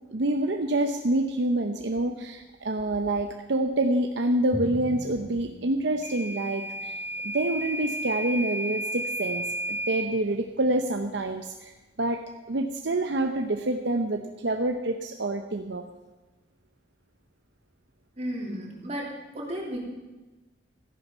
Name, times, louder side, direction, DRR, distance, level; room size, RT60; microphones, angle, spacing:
voice 1, 0.1-7.0 7.3-11.7 12.0-12.2 12.5-15.8, right 1 dB, 70° right, 5 dB, 0.8 m, -27 dB
Drum, 4.5-6.9, right 1 dB, 15° left, 4.5 m, -40 dB
Microwave oven / Alarm, 6.0-10.1, right 1 dB, 35° left, 2.4 m, -32 dB
voice 2, 18.2-19.8, equal, 35° right, -3 dB, 3.1 m, -34 dB
14.0 x 10.5 x 5.6 m, 1.2 s
head